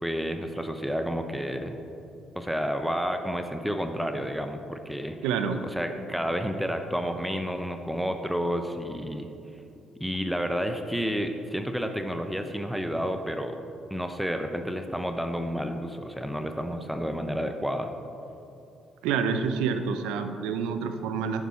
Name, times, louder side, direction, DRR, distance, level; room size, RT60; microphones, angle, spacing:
voice 1, 0.0-1.8 2.4-5.2 5.6-9.3 10.0-13.6 13.9-17.9, equal, ahead, 6 dB, 0.7 m, -30 dB
voice 2, 5.2-5.6 19.0-21.4, right 6 dB, 85° right, 8 dB, 0.6 m, -28 dB
10.5 x 7.2 x 4.4 m, 2.8 s
hypercardioid pair, 55°, 0 cm